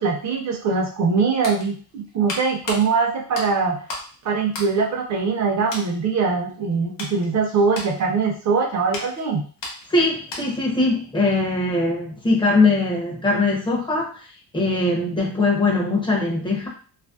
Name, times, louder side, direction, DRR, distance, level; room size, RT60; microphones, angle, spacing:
voice 1, 0.0-3.8 4.2-9.4, right 4 dB, 40° right, 0 dB, 0.7 m, -22 dB
sound 1, 1.3-4.1 4.5-5.4 5.7-5.9 6.5-10.7 11.0-11.2, left 2 dB, 90° left, 1.0 m, -36 dB
voice 2, 9.9-14.2 14.5-16.7, left 2 dB, 10° left, -3 dB, 0.6 m, -21 dB
2.5 x 2.1 x 2.3 m, 0.41 s
cardioid pair, 135°, 41 cm